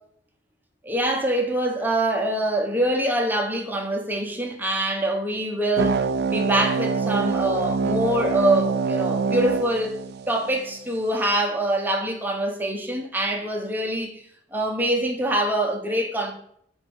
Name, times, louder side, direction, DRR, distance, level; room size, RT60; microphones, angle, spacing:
voice 1, 0.8-6.0 6.3-10.0 10.3-14.2 14.5-16.3, right 1 dB, 10° right, 1.0 m, -24 dB
sound 1, 5.8-10.8, right 4 dB, 60° right, 0.4 m, -25 dB
5.9 x 4.4 x 4.7 m
head